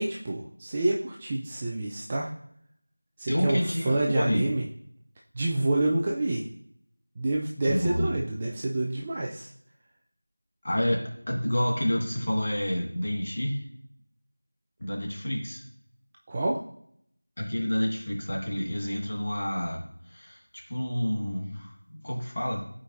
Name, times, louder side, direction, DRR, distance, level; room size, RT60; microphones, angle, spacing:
voice 1, 0.0-2.3 3.2-4.6 5.3-6.4 7.2-9.5 16.3-16.6, right 2 dB, 15° right, -2 dB, 0.4 m, -28 dB
voice 2, 3.3-4.5 7.6-8.1 10.6-13.6 14.8-15.6 17.4-19.8 20.1-22.6, equal, 35° left, -1 dB, 1.6 m, -29 dB
12.0 x 4.9 x 2.5 m, 0.70 s
figure-of-eight pair, 175°, 0 cm